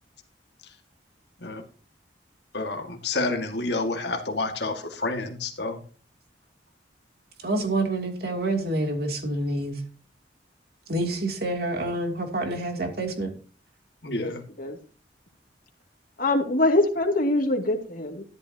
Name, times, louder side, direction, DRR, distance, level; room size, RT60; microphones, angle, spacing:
voice 1, 2.5-5.8 14.0-14.4, left 3 dB, 65° left, 1.9 m, -29 dB
voice 2, 7.4-9.8 10.9-13.3, right 2 dB, 60° right, 2.8 m, -27 dB
voice 3, 16.2-18.2, left 2 dB, 50° left, 2.4 m, -23 dB
13.5 x 11.0 x 2.9 m
head